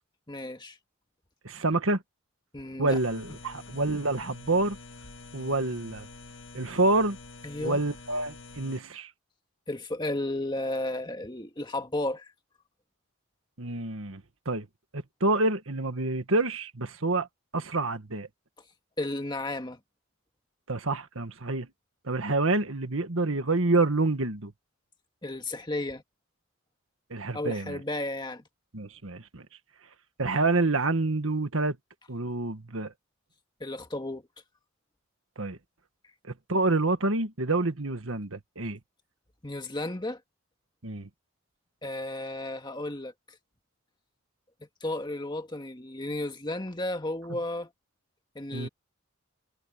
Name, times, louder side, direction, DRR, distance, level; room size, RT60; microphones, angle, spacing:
voice 1, 0.3-0.8 2.5-3.0 7.4-7.8 9.7-12.3 19.0-19.8 25.2-26.0 27.3-28.4 33.6-34.2 39.4-40.2 41.8-43.1 44.8-47.7 48.4-48.7, left 1 dB, 20° left, 1.8 m, -33 dB
voice 2, 1.4-2.0 2.8-4.8 5.3-6.1 6.5-7.2 7.6-9.1 13.6-14.2 14.4-14.7 15.2-17.3 17.5-18.3 20.7-21.7 22.0-24.5 27.1-27.8 28.7-29.4 30.2-31.8 32.1-32.9 35.4-35.6 36.2-38.8 40.8-41.1 48.5-48.7, right 2 dB, 70° right, 1.7 m, -27 dB
sound 1, 2.9-8.8, left 3 dB, 60° left, 2.1 m, -47 dB
head